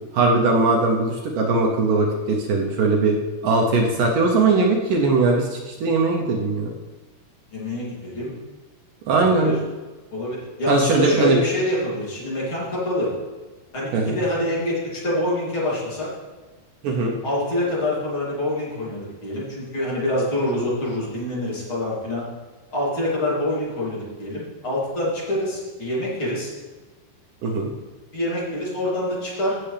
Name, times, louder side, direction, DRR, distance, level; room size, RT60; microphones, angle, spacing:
voice 1, 0.1-3.2 3.4-6.7 9.1-9.5 10.7-11.4 13.9-14.2 16.8-17.1 27.4-27.7, right 3 dB, 70° right, 0 dB, 2.2 m, -20 dB
voice 2, 7.5-8.3 9.1-9.6 10.1-13.1 13.7-16.1 17.2-22.2 22.7-26.5 28.1-29.6, left 1 dB, 35° left, -7 dB, 3.4 m, -26 dB
15.5 x 6.9 x 3.4 m, 1.3 s
omnidirectional pair, 4.7 m